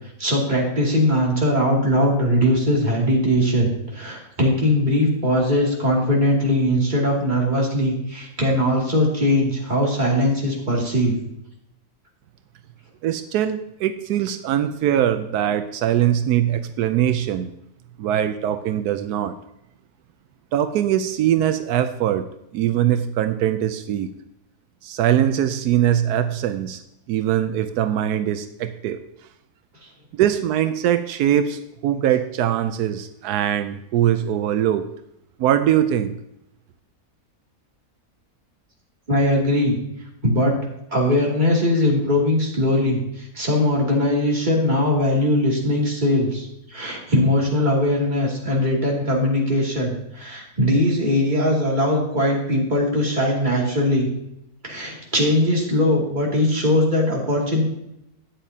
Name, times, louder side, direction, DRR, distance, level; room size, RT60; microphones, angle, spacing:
voice 1, 0.2-11.1 39.1-39.8 40.2-40.5 40.9-54.1 54.6-57.6, left 1 dB, 30° right, -3 dB, 2.7 m, -20 dB
voice 2, 13.0-17.5 18.0-19.4 20.5-22.3 22.5-24.1 24.8-26.8 27.1-29.0 30.1-34.9 35.4-36.1, right 11 dB, 85° right, 10 dB, 1.1 m, -22 dB
13.0 x 9.1 x 2.8 m, 0.81 s
omnidirectional pair, 1.6 m